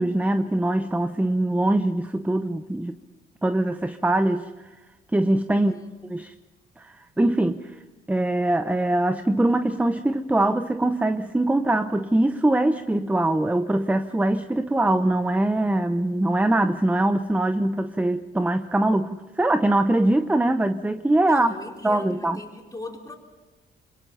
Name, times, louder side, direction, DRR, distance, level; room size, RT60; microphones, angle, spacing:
voice 1, 0.0-2.9 3.4-4.5 5.1-5.8 6.1-6.3 6.8-7.7 8.1-21.5 21.8-22.4, right 1 dB, 5° right, 10 dB, 0.8 m, -22 dB
voice 2, 5.5-6.0 21.3-23.2, left 2 dB, 15° left, 0 dB, 4.5 m, -39 dB
26.5 x 22.5 x 5.6 m, 1.2 s
cardioid pair, 90°, 20 cm